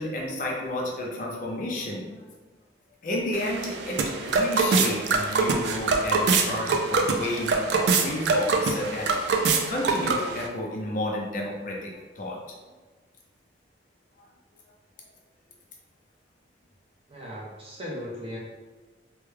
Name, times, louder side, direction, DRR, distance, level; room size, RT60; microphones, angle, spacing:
voice 1, 0.0-2.2 3.0-9.2 9.7-12.4 15.0-15.1, left 1 dB, 45° left, -2 dB, 0.5 m, -31 dB
sound 1, 3.3-10.5, right 4 dB, 65° right, 0.3 m, -24 dB
voice 2, 17.1-18.4, equal, 30° right, -4 dB, 0.6 m, -37 dB
3.2 x 2.2 x 3.2 m, 1.3 s
head